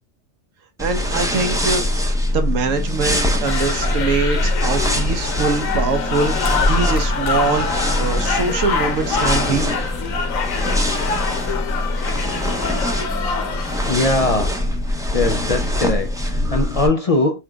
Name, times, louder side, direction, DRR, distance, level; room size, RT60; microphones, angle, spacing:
sound 1, 0.8-16.9, left 1 dB, 5° right, 0.5 m, -22 dB
voice 1, 0.8-9.7, right 4 dB, 85° right, 1.2 m, -23 dB
sound 2, 3.4-13.9, left 5 dB, 90° left, 1.3 m, -25 dB
voice 2, 13.9-14.7 15.1-17.4, left 2 dB, 60° left, 0.3 m, -21 dB
4.9 x 4.3 x 2.3 m
omnidirectional pair, 1.3 m